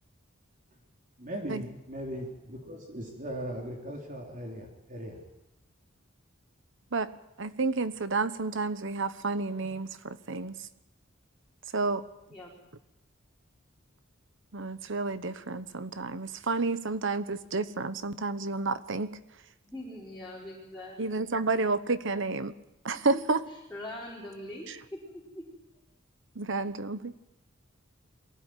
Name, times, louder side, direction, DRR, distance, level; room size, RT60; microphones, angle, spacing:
voice 1, 1.2-5.2, equal, 40° right, 0 dB, 3.6 m, -39 dB
voice 2, 7.4-10.7 11.7-12.0 14.5-19.2 21.0-22.5 22.8-23.4 24.7-24.8 26.3-27.2, right 3 dB, 65° right, 13 dB, 1.1 m, -30 dB
voice 3, 19.7-21.3 22.9-23.4 23.7-25.5, left 1 dB, 5° left, -7 dB, 5.2 m, -42 dB
23.0 x 16.5 x 9.3 m, 0.93 s
head